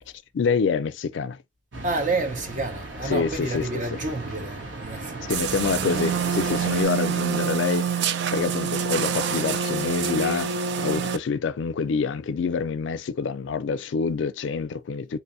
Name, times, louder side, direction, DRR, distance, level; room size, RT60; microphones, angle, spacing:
voice 1, 0.3-1.4 3.1-4.0 5.3-15.2, left 5 dB, 80° left, 0.4 m, -27 dB
sound 1, 1.7-6.8, right 2 dB, 90° right, 1.1 m, -36 dB
voice 2, 1.8-5.2, right 2 dB, 45° right, 0.8 m, -29 dB
sound 2, 5.3-11.2, right 6 dB, 65° right, 0.4 m, -26 dB
3.7 x 2.7 x 2.5 m
head